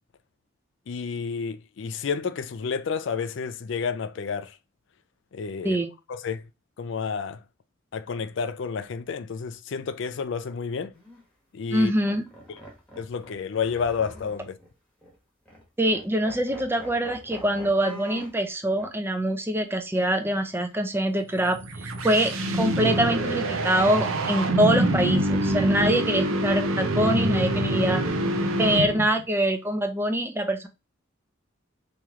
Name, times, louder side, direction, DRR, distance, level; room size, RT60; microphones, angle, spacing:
voice 1, 0.9-4.6 5.3-5.8 6.1-6.4 6.8-7.4 7.9-10.9 11.5-11.9 13.0-14.6, left 5 dB, 60° left, 0.4 m, -30 dB
sound 1, 10.9-11.2 11.8-14.7 15.0-15.2 15.5-15.6 15.9-18.4 18.8-18.9 22.1-23.0, left 1 dB, 5° left, 1.2 m, -45 dB
voice 2, 11.7-12.3 15.8-28.0 28.6-30.7, right 1 dB, 10° right, 0.5 m, -24 dB
sound 2, 21.4-29.2, right 1 dB, 85° right, 0.6 m, -25 dB
3.1 x 3.0 x 3.6 m
head